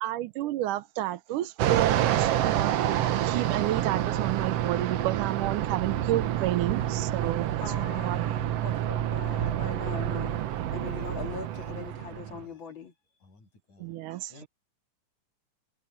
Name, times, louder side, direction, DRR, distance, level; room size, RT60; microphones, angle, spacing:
voice 1, 0.0-2.8 3.2-8.3 13.8-14.4, right 14 dB, 85° right, 2.4 m, -31 dB
Fixed-wing aircraft airplane, 1.6-12.4, right 12 dB, 65° right, 1.7 m, -28 dB
voice 2, 7.6-10.4 10.7-12.9, left 6 dB, 40° left, 2.7 m, -41 dB
voice 3, 10.8-12.6 13.2-13.9 14.3-14.5, left 1 dB, 70° left, 8.6 m, -49 dB
omnidirectional pair, 3.6 m